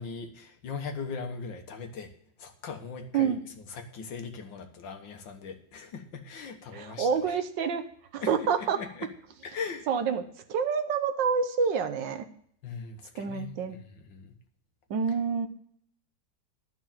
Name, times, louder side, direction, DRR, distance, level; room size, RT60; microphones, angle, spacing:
voice 1, 0.0-2.1 2.4-3.4 3.7-7.4 8.2-9.1 9.4-9.9 12.6-14.3, left 5 dB, 75° left, 5 dB, 2.0 m, -39 dB
voice 2, 6.7-7.9 8.1-8.8 9.9-10.2 10.5-12.3 13.2-13.8 14.9-15.5, right 6 dB, 75° right, 9 dB, 1.6 m, -27 dB
12.0 x 5.9 x 7.4 m, 0.65 s
omnidirectional pair, 2.1 m